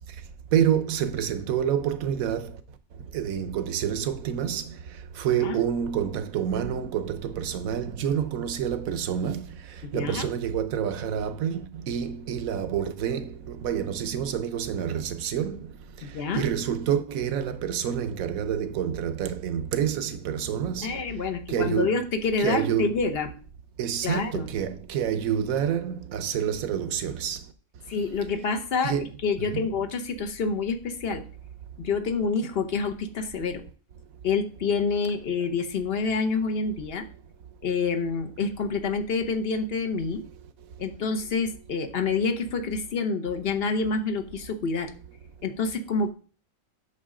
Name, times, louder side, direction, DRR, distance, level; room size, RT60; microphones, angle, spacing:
voice 1, 0.5-2.5 3.1-4.8 5.2-9.5 9.9-15.6 16.3-20.9 21.5-22.0 22.4-23.0 23.8-27.4 28.8-29.1 29.4-29.6, right 9 dB, 80° right, 1.2 m, -28 dB
voice 2, 9.8-10.3 16.0-16.4 20.8-23.3 24.0-24.5 27.9-31.2 31.8-33.6 34.2-37.1 37.6-40.2 40.8-44.9 45.4-46.1, left 4 dB, 50° left, 1.0 m, -27 dB
8.1 x 6.4 x 3.7 m
omnidirectional pair, 1.5 m